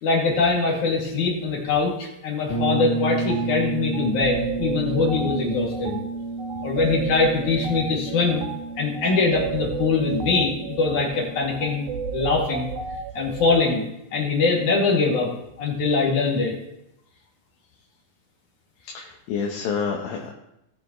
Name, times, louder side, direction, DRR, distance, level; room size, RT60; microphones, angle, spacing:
voice 1, 0.0-6.0 6.6-8.4 8.8-11.9 12.1-12.7 13.1-13.8 14.1-15.3 15.6-16.5, left 4 dB, 55° left, -2 dB, 3.7 m, -22 dB
sound 1, 2.5-12.2, right 3 dB, 40° left, 2.3 m, -31 dB
sound 2, 3.3-3.5 3.9-13.7, right 7 dB, 85° right, 2.7 m, -33 dB
voice 2, 18.8-20.3, left 6 dB, 80° left, 0 dB, 2.8 m, -28 dB
18.5 x 7.4 x 3.1 m, 0.86 s
omnidirectional pair, 4.2 m